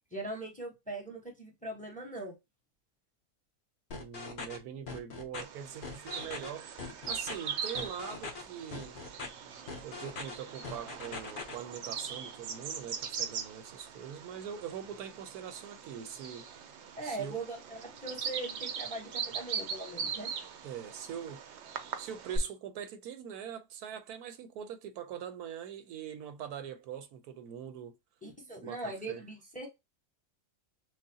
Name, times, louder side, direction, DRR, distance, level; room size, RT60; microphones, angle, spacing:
voice 1, 0.1-2.3 17.0-20.3 28.2-29.7, right 2 dB, 5° left, 0.9 m, -40 dB
sound 1, 3.9-4.6 4.9-5.4 5.8-6.5 6.8-7.3 7.8-8.4 8.7-9.3 9.7-10.4 10.6-11.6, left 4 dB, 45° left, 0.8 m, -41 dB
voice 2, 3.9-6.8 7.1-9.0 9.8-16.5 17.0-17.4 20.6-21.4 22.0-27.9 28.6-29.2, right 8 dB, 80° right, 1.2 m, -43 dB
Bird vocalization bird call bird song, 5.4-22.4, right 6 dB, 60° right, 0.8 m, -41 dB
6.2 x 2.1 x 2.7 m
omnidirectional pair, 1.6 m